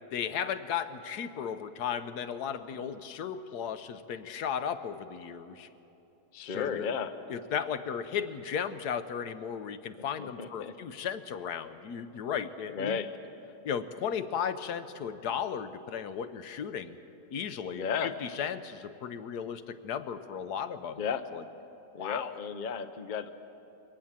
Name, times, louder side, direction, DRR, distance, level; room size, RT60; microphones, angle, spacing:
voice 1, 0.1-5.7 6.4-6.9 7.3-13.0 13.6-17.0 17.3-21.0 21.3-21.4 22.0-22.3, left 8 dB, 75° left, 11 dB, 1.3 m, -35 dB
voice 2, 6.3-7.1 10.2-10.7 12.7-13.1 17.7-18.2 21.0-21.2 21.9-23.3, left 6 dB, 45° left, 10 dB, 0.6 m, -34 dB
22.5 x 18.0 x 7.4 m, 2.9 s
omnidirectional pair, 1.8 m